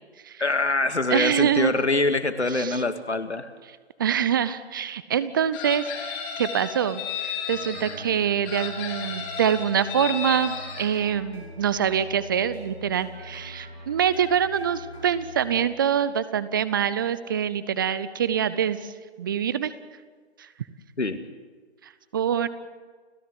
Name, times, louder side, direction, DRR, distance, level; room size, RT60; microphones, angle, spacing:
voice 1, 0.4-3.5 21.0-21.2, left 3 dB, 85° left, 9 dB, 2.3 m, -24 dB
voice 2, 1.1-1.7 2.5-2.8 4.0-18.9 19.2-19.7 20.4-20.5 22.1-22.5, right 8 dB, 20° right, 15 dB, 0.6 m, -25 dB
Chicken rooster, 5.5-8.0 8.5-10.9, left 8 dB, 20° left, 3.5 m, -34 dB
sound 1, 7.5-15.6, right 1 dB, 65° right, 7.2 m, -43 dB
30.0 x 15.0 x 8.0 m, 1.5 s
figure-of-eight pair, 145°, 33 cm